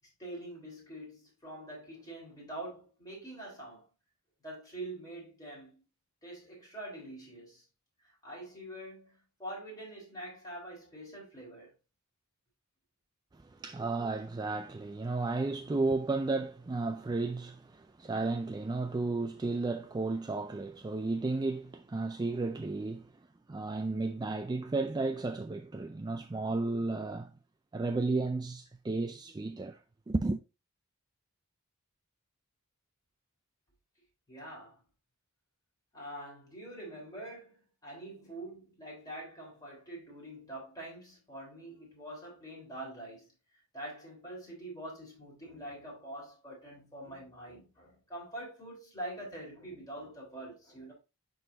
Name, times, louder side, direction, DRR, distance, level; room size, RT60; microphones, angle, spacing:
voice 1, 0.2-3.8 4.4-5.8 6.2-7.6 8.2-11.7 34.3-34.8 35.9-43.3 43.7-50.9, right 1 dB, 15° left, 3.7 m, -45 dB
voice 2, 13.3-23.1 23.5-27.3 27.7-29.8 30.1-30.4, right 3 dB, 20° right, 0.3 m, -33 dB
10.5 x 4.0 x 2.7 m
head